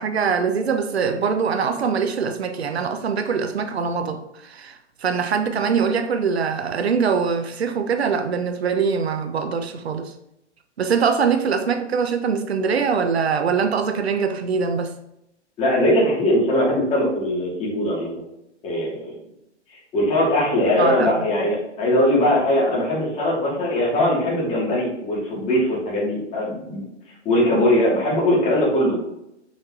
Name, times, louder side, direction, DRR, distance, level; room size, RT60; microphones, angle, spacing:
voice 1, 0.0-10.1 10.8-14.9 20.8-21.1, right 6 dB, 60° right, 8 dB, 1.1 m, -23 dB
voice 2, 15.6-18.3 18.6-19.2 19.9-26.8 27.2-29.1, left 1 dB, 20° left, -6 dB, 2.9 m, -20 dB
7.6 x 5.9 x 3.1 m, 0.83 s
figure-of-eight pair, 125°, 36 cm